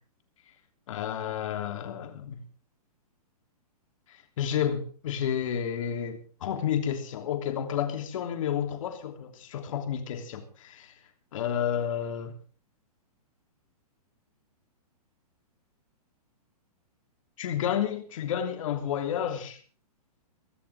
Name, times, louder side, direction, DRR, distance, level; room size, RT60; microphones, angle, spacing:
voice 1, 0.9-2.4 4.1-10.9 11.3-12.4 17.4-19.6, left 9 dB, 55° left, 3.1 m, -31 dB
23.0 x 13.0 x 3.5 m
hypercardioid pair, 160°, 20 cm